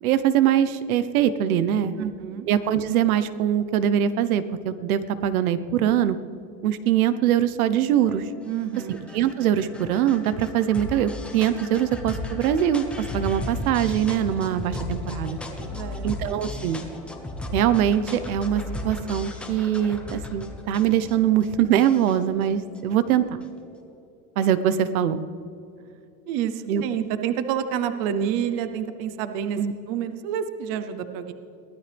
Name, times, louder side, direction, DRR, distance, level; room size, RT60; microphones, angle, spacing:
voice 1, 0.0-2.1 2.5-6.2 6.6-8.3 8.9-12.8 13.1-15.4 16.0-16.8 17.5-23.2 24.4-25.2 26.7-26.8 29.6-29.7, right 10 dB, 85° right, 13 dB, 1.1 m, -22 dB
voice 2, 2.0-2.5 8.5-9.0 15.5-16.1 26.3-29.6 29.9-31.3, right 9 dB, 35° right, 10 dB, 0.8 m, -28 dB
sound 1, 8.1-23.6, left 1 dB, 5° left, 0.8 m, -36 dB
23.0 x 16.0 x 3.5 m, 2.7 s
supercardioid pair, 180°, 42 cm